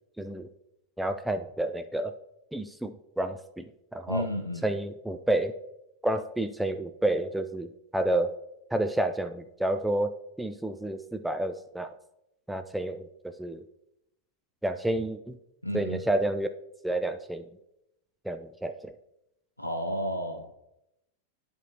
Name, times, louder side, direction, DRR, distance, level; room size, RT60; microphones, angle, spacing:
voice 1, 0.2-0.5 1.0-2.1 2.5-3.6 3.9-4.3 4.6-5.5 6.0-8.3 8.7-10.1 10.4-11.9 12.5-13.1 13.4-13.6 14.6-15.3 15.7-16.5 16.8-17.4 18.3-18.8, right 1 dB, 5° right, 7 dB, 0.3 m, -29 dB
voice 2, 4.1-4.6 15.6-16.0 19.6-20.5, equal, 85° left, 3 dB, 0.5 m, -32 dB
10.5 x 4.5 x 2.7 m, 0.86 s
figure-of-eight pair, 90°, 0 cm